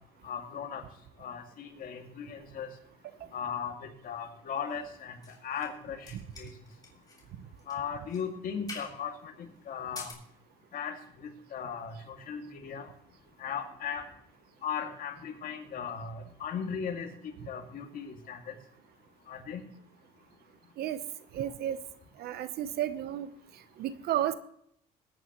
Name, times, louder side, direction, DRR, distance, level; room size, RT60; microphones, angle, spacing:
voice 1, 0.2-0.8 1.2-2.7 3.3-5.2 5.4-6.5 7.7-10.1 10.7-12.9 13.4-14.1 14.6-17.1 17.5-18.6 19.3-19.6, left 7 dB, 55° left, 3 dB, 2.3 m, -37 dB
sound 1, 4.7-5.8 6.0-7.3 7.6-7.8 8.1-8.2 8.7-9.0 9.8-10.1, left 4 dB, 20° left, 3.4 m, -46 dB
voice 2, 21.3-21.8 22.2-23.3 23.8-24.3, right 11 dB, 70° right, 13 dB, 0.9 m, -32 dB
21.5 x 9.2 x 3.1 m, 0.72 s
cardioid pair, 110°, 17 cm